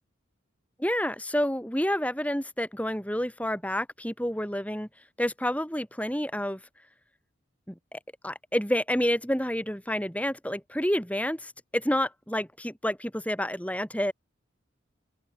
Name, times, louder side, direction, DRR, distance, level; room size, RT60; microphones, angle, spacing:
voice 1, 0.8-4.9 5.2-6.6 7.9-14.1, equal, 5° left, 6.8 m, -29 dB
open air
head